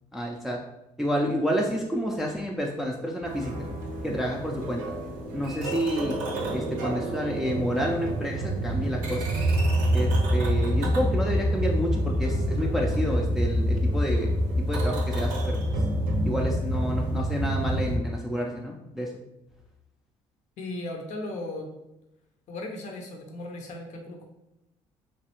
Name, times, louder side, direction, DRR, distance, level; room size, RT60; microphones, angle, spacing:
voice 1, 0.1-0.6 1.0-3.7 4.0-4.8 5.3-6.1 6.5-9.3 9.9-14.3 14.7-15.6 16.2-19.1, equal, ahead, -1 dB, 0.4 m, -29 dB
sound 1, 3.3-18.0, equal, 85° right, 0.6 m, -27 dB
voice 2, 20.6-21.7 22.5-24.2, left 2 dB, 60° left, 2 dB, 0.6 m, -36 dB
3.1 x 2.3 x 2.9 m, 0.91 s
supercardioid pair, 70°, 14 cm